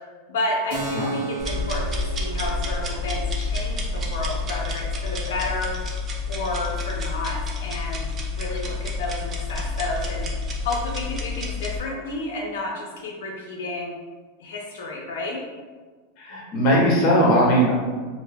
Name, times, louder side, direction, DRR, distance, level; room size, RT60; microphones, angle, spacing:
voice 1, 0.3-5.8 6.3-8.1 8.3-10.3 10.6-13.9 14.4-15.4, left 2 dB, 90° left, -1 dB, 0.4 m, -31 dB
Keyboard (musical), 0.7-8.0, right 2 dB, 60° right, 0.7 m, -37 dB
sound 1, 1.4-11.8, left 3 dB, 20° right, 0.3 m, -29 dB
voice 2, 16.2-17.7, equal, 35° left, -3 dB, 0.7 m, -19 dB
2.2 x 2.0 x 3.4 m, 1.4 s
supercardioid pair, 165°, 0 cm